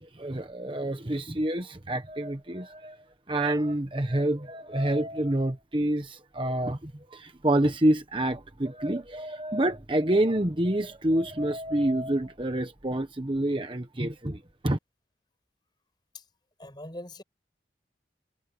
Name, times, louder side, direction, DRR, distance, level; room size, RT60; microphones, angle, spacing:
voice 1, 0.0-3.0 3.3-14.8, right 1 dB, 30° right, 1.2 m, -27 dB
voice 2, 16.6-17.2, left 1 dB, 25° left, 6.2 m, -41 dB
head